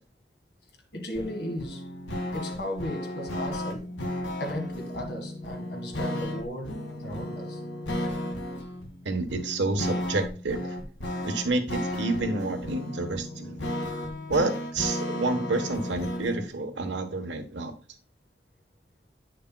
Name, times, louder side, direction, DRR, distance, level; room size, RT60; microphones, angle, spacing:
voice 1, 0.9-1.9 2.3-7.6, left 1 dB, 65° left, 1.7 m, -36 dB
sound 1, 1.1-16.5, left 1 dB, 85° left, 1.6 m, -34 dB
voice 2, 9.0-10.8 11.2-13.6 14.3-17.7, right 2 dB, 80° right, 1.1 m, -29 dB
8.9 x 6.5 x 2.3 m
head